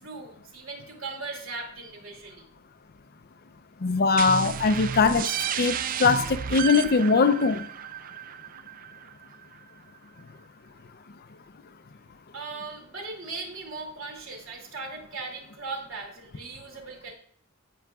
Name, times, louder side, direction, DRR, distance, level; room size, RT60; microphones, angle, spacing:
voice 1, 0.0-2.5 12.3-17.1, right 3 dB, 75° right, 2.6 m, -38 dB
voice 2, 3.8-5.3 5.6-7.7, left 4 dB, 50° left, 0.6 m, -21 dB
sound 1, 4.2-9.6, right 8 dB, 40° right, 0.4 m, -32 dB
15.5 x 5.7 x 2.4 m
head